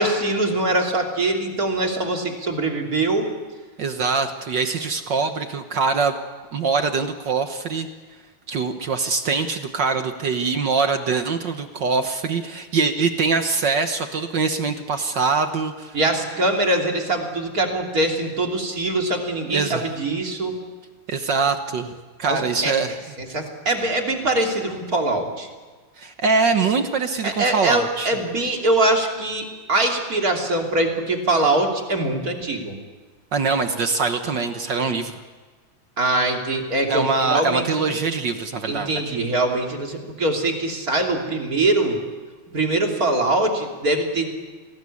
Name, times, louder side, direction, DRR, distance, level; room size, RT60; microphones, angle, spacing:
voice 1, 0.0-3.3 15.9-20.6 22.3-22.7 23.2-25.5 27.2-32.8 36.0-37.9 38.7-42.0 42.5-44.3, right 2 dB, 30° right, 2 dB, 3.1 m, -23 dB
voice 2, 3.8-6.1 6.5-7.9 8.5-16.0 19.5-19.9 21.1-23.0 26.0-28.1 33.3-35.2 36.9-38.9, right 4 dB, 60° right, 7 dB, 1.2 m, -23 dB
27.5 x 19.0 x 8.5 m, 1.4 s
omnidirectional pair, 3.4 m